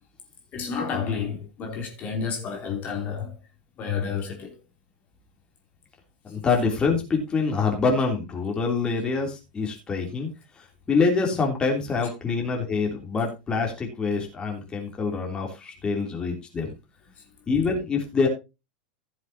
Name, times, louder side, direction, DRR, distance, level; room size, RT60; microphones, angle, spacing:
voice 1, 0.5-3.4 3.8-4.6, left 6 dB, 35° left, 3.3 m, -30 dB
voice 2, 6.2-10.3 10.6-16.7 17.5-18.3, left 4 dB, 20° left, 3.3 m, -25 dB
15.5 x 7.4 x 2.9 m
figure-of-eight pair, 90°, 5 cm